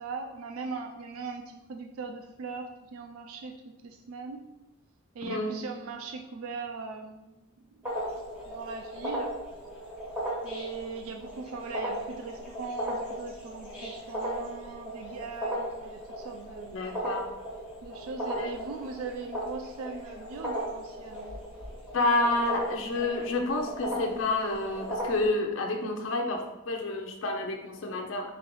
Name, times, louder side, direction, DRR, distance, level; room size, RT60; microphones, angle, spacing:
voice 1, 0.0-3.5 3.8-4.4 5.1-8.0 8.5-9.3 10.4-16.8 17.8-21.4, right 4 dB, 75° right, 4 dB, 0.3 m, -40 dB
sound 1, 7.8-25.3, equal, 5° right, 1.3 m, -36 dB
voice 2, 16.7-17.3 18.4-18.5 21.9-28.3, left 2 dB, 60° left, 3 dB, 0.5 m, -29 dB
3.9 x 3.7 x 2.9 m, 1.0 s
head